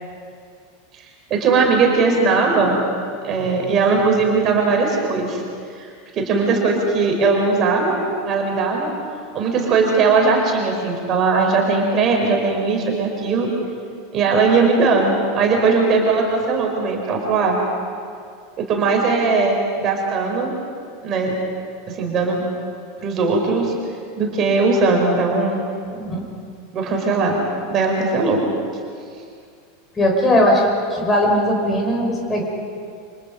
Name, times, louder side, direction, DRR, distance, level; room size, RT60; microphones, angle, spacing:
voice 1, 1.3-2.8 3.2-5.4 5.7-5.9 6.1-8.0 8.2-8.9 9.3-13.5 14.1-17.6 18.6-20.5 21.0-21.4 21.9-22.4 23.0-23.7 24.2-25.6 26.7-27.4 27.7-28.4, right 4 dB, 35° right, 1 dB, 4.9 m, -19 dB
voice 2, 25.9-26.2 30.0-32.4, left 1 dB, 15° left, 0 dB, 5.7 m, -19 dB
29.5 x 26.0 x 5.4 m, 2.3 s
figure-of-eight pair, 85°, 0 cm